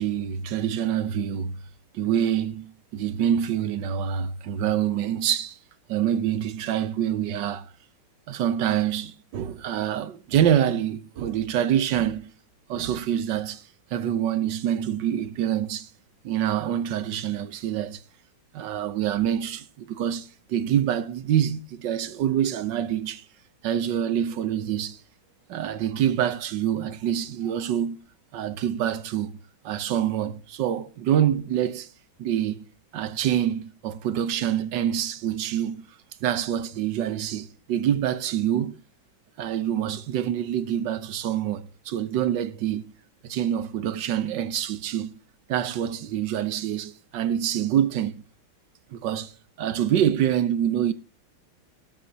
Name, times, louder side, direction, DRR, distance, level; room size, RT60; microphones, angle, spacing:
voice 1, 0.0-1.6 1.9-5.6 5.9-7.7 8.3-12.3 12.7-13.6 13.9-15.9 16.2-18.0 18.5-23.2 23.6-25.0 25.5-28.0 28.3-29.3 29.6-31.9 32.2-32.6 32.9-35.8 36.2-38.8 39.4-42.8 43.2-45.1 45.5-48.2 48.9-49.3 49.6-50.9, right 10 dB, 65° right, 1.5 m, -26 dB
18.0 x 8.1 x 2.8 m
omnidirectional pair, 2.2 m